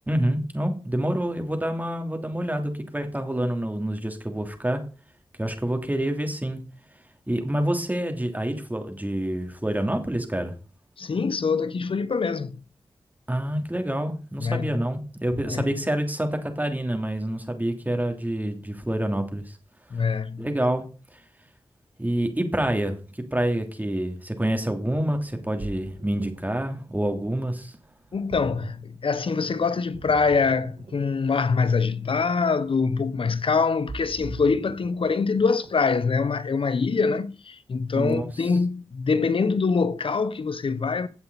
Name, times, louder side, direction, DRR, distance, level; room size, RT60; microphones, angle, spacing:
voice 1, 0.1-4.8 5.4-6.6 7.3-10.5 13.3-19.6 20.4-20.9 21.1-21.2 22.0-27.7 37.9-38.3, right 1 dB, 15° right, 3.1 m, -27 dB
voice 2, 11.0-12.6 14.4-14.7 15.4-15.7 19.9-20.5 28.1-41.1, left 4 dB, 65° left, 1.0 m, -24 dB
Ocean, 25.3-35.9, right 2 dB, 60° right, 1.7 m, -43 dB
15.5 x 8.0 x 4.2 m
cardioid pair, 40°, 10 cm